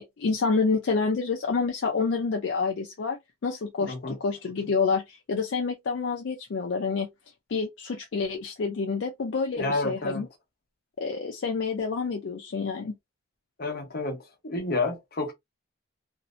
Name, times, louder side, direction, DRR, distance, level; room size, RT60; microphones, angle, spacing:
voice 1, 0.0-7.1 7.5-10.3 11.0-12.9, left 4 dB, 65° left, 0.4 m, -28 dB
voice 2, 3.9-4.2 9.6-10.3 13.6-15.3, left 2 dB, 50° left, 0.8 m, -30 dB
2.6 x 2.0 x 2.4 m
head